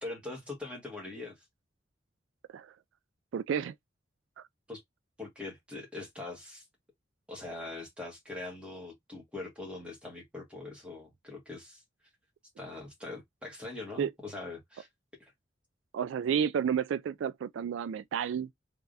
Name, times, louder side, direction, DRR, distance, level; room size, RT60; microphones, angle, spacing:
voice 1, 0.0-1.3 4.7-4.8 5.2-6.6 7.3-11.8 12.6-14.9 15.2-15.3, left 2 dB, 5° right, 1.6 m, -42 dB
voice 2, 3.3-3.7 4.4-4.5 14.0-14.1 15.9-18.5, right 8 dB, 85° right, 0.3 m, -31 dB
3.4 x 3.4 x 2.6 m
head